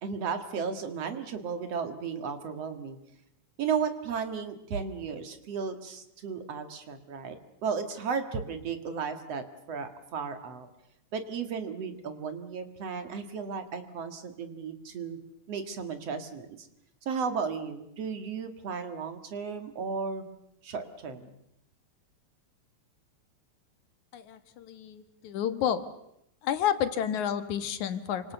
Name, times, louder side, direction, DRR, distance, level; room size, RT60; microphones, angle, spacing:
voice 1, 0.0-3.0 3.6-10.7 11.1-15.2 15.5-16.7 17.0-20.2 20.6-21.4, right 6 dB, 60° right, 8 dB, 2.9 m, -34 dB
voice 2, 24.1-25.9 26.4-28.3, left 9 dB, 80° left, 10 dB, 2.8 m, -30 dB
28.0 x 26.0 x 6.9 m, 0.79 s
omnidirectional pair, 3.3 m